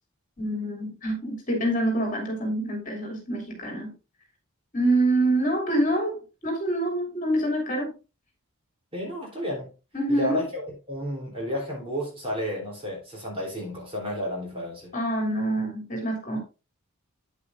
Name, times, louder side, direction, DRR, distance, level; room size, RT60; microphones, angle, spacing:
voice 1, 0.4-3.9 4.7-7.9 9.9-10.4 14.9-16.4, right 1 dB, 35° left, 2.8 m, -26 dB
voice 2, 8.9-9.7 10.1-14.9, left 1 dB, 25° right, 3.4 m, -32 dB
9.1 x 8.3 x 2.5 m
head